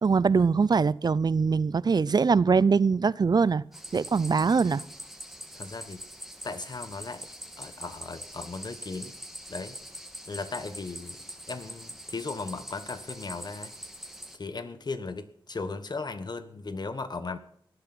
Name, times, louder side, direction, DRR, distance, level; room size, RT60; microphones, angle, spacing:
voice 1, 0.0-3.6 3.9-4.8, right 5 dB, 50° right, 0.5 m, -22 dB
sound 1, 3.7-14.4, equal, 5° right, 2.3 m, -43 dB
voice 2, 5.5-6.0 6.4-7.3 7.6-9.1 9.5-9.8 10.3-11.2 11.5-13.7 14.3-17.4, left 3 dB, 50° left, 1.3 m, -37 dB
18.0 x 10.5 x 6.1 m
cardioid pair, 55°, 9 cm